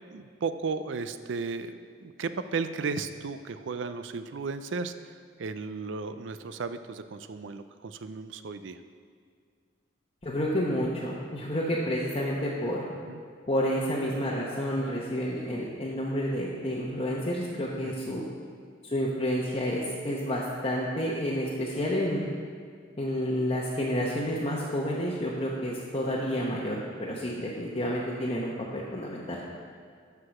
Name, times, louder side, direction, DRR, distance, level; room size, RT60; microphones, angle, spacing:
voice 1, 0.1-5.1 5.4-8.8 13.0-13.2 17.8-18.2, right 4 dB, 70° right, 11 dB, 0.4 m, -35 dB
voice 2, 10.2-12.9 13.5-18.3 18.8-22.2 23.0-28.5 28.9-29.4, equal, 30° left, -5 dB, 0.9 m, -30 dB
12.5 x 4.8 x 5.9 m, 2.1 s
head